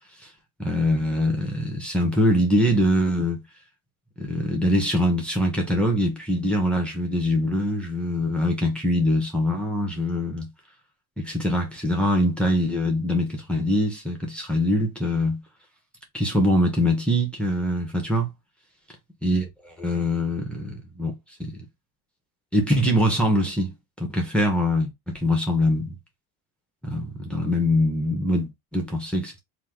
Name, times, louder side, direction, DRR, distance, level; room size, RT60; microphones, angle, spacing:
voice 1, 0.6-3.4 4.2-10.5 11.2-15.4 16.1-18.3 19.2-21.6 22.5-23.7 24.1-26.0 26.8-29.4, left 1 dB, 5° left, 1.3 m, -23 dB
3.0 x 3.0 x 3.8 m
supercardioid pair, 80°, 41 cm